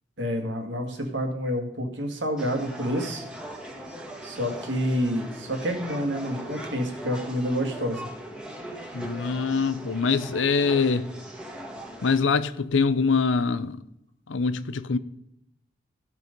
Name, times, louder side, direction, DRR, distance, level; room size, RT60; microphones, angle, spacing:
voice 1, 0.2-3.3 4.2-8.1, equal, 70° right, 2.1 m, -28 dB
sound 1, 2.4-12.2, right 1 dB, 5° right, 1.5 m, -39 dB
voice 2, 8.9-11.1 12.0-13.8 14.3-15.0, left 4 dB, 75° left, 0.6 m, -24 dB
15.5 x 6.2 x 5.3 m
head